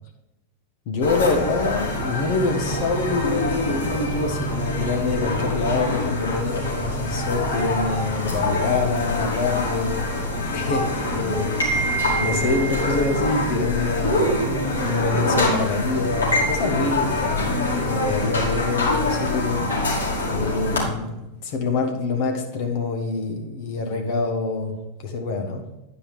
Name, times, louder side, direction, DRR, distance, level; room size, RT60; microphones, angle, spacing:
voice 1, 0.9-10.0 10.5-14.4 14.8-19.9 20.3-24.7 25.0-25.6, left 3 dB, 45° left, 2 dB, 1.3 m, -26 dB
sound 1, 1.0-20.8, left 1 dB, 75° left, 2.7 m, -25 dB
10.5 x 5.1 x 5.1 m, 0.97 s
figure-of-eight pair, 90°, 0 cm